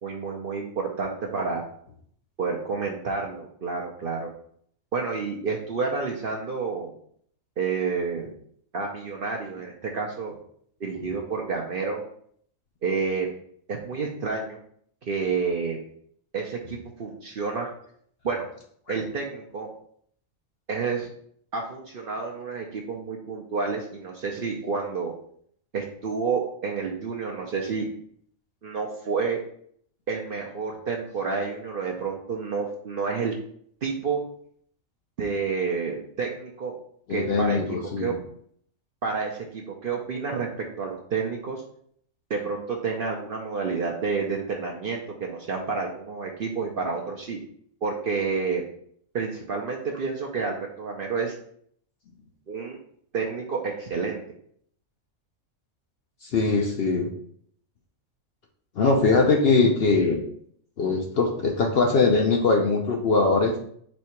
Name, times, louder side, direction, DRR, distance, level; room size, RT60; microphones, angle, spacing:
voice 1, 0.0-1.6 2.4-4.3 4.9-6.9 7.6-8.4 8.7-10.3 10.8-12.0 12.8-13.3 13.7-14.6 15.0-15.9 16.3-17.7 18.2-18.5 18.9-19.7 20.7-21.1 21.5-25.1 25.7-27.9 28.6-29.4 30.1-33.3 33.8-34.2 35.2-36.7 37.1-38.1 39.0-41.6 42.3-47.4 47.8-48.6 49.1-51.3 52.5-52.8 53.1-54.2, right 5 dB, 55° right, 0 dB, 0.6 m, -29 dB
voice 2, 37.1-38.2 56.2-57.1 58.8-60.2 60.8-63.5, left 3 dB, 60° left, 2 dB, 0.7 m, -21 dB
4.3 x 2.8 x 4.3 m, 0.64 s
omnidirectional pair, 1.4 m